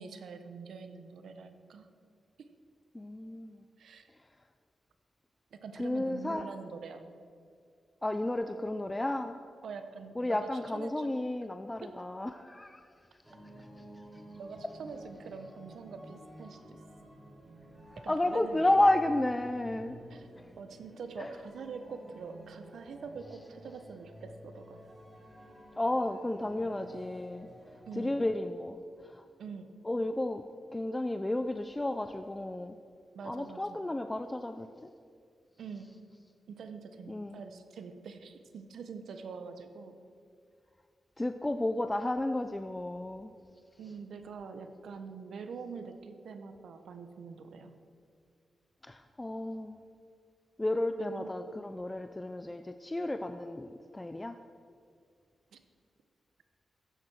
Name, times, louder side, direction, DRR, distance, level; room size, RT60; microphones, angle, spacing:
voice 1, 0.0-1.9 2.4-2.5 3.8-4.1 5.5-7.1 9.6-11.1 11.8-11.9 14.4-16.8 18.0-18.8 20.1-20.3 20.6-24.8 27.9-28.2 29.4-29.7 33.1-33.8 35.6-36.0 36.5-40.0 43.8-47.8 51.0-51.4 55.5-55.6, right 5 dB, 75° right, 8 dB, 1.0 m, -45 dB
voice 2, 2.9-3.6 5.8-6.5 8.0-9.4 10.2-12.9 13.3-13.5 18.1-20.0 21.2-21.3 25.8-27.5 28.0-28.8 29.0-29.3 29.8-30.4 30.7-32.8 33.2-34.7 37.1-37.4 41.2-43.3 48.8-49.8 50.6-54.4, left 1 dB, 15° left, 8 dB, 0.4 m, -32 dB
sound 1, 13.2-28.3, equal, 15° right, 2.1 m, -52 dB
15.0 x 7.6 x 6.3 m, 2.2 s
wide cardioid pair, 140°, 0 cm